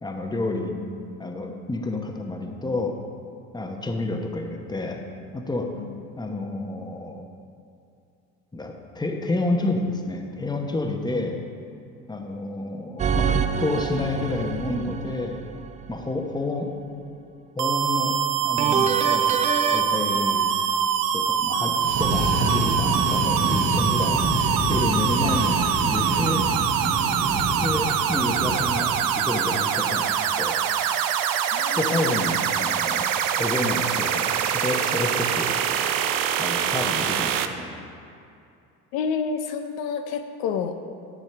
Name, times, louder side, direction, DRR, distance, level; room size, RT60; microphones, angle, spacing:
voice 1, 0.0-0.8 1.2-3.0 3.5-5.0 5.3-5.7 6.2-7.2 8.5-11.4 12.1-15.4 15.9-16.7 17.6-18.2 18.4-19.3 19.7-20.5 21.1-24.2 24.7-26.4 27.6-30.1 30.4-30.6 31.7-33.1 33.3-35.5 36.4-37.9, left 2 dB, 10° left, 3 dB, 0.9 m, -29 dB
sound 1, 13.0-16.0 18.6-19.8, right 7 dB, 20° right, 0.3 m, -26 dB
sound 2, 17.6-37.5, right 8 dB, 60° right, 0.6 m, -24 dB
voice 2, 20.1-20.4 31.5-32.1 38.9-40.9, left 6 dB, 70° left, 7 dB, 0.6 m, -30 dB
sound 3, 21.8-29.2, right 1 dB, 35° right, 1.6 m, -27 dB
10.5 x 6.4 x 3.3 m, 2.6 s
supercardioid pair, 80°, 39 cm